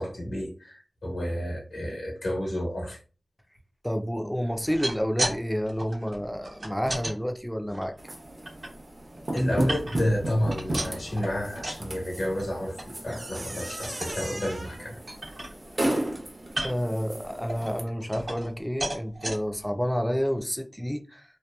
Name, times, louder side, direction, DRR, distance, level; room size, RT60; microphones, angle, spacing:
voice 1, 0.0-3.0 9.3-15.0, equal, 90° left, 1.1 m, -30 dB
voice 2, 3.8-7.9 16.6-21.2, equal, ahead, 0.4 m, -29 dB
sound 1, 4.5-5.4 5.7-7.1 7.7-8.7 9.1-10.2 10.5-11.9 12.2-12.5 12.8-12.9 13.3-13.5 13.8-14.2 14.7-14.8 15.1-15.9 16.5-16.9 17.5-18.5 18.8-19.4 20.0-20.1 20.4-20.5, right 1 dB, 75° right, 1.0 m, -34 dB
sound 2, 8.0-17.8, right 1 dB, 50° right, 0.7 m, -35 dB
2.8 x 2.2 x 2.2 m
cardioid pair, 45°, 0 cm